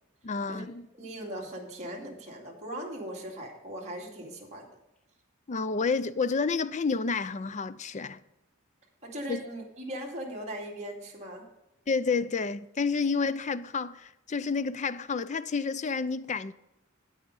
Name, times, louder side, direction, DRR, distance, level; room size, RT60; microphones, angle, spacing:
voice 1, 0.2-0.9 5.5-8.2 9.3-9.4 11.9-16.5, left 4 dB, 35° left, 0.5 m, -30 dB
voice 2, 0.9-4.7 9.0-11.5, right 1 dB, 35° right, 2.5 m, -39 dB
8.9 x 8.8 x 5.4 m
head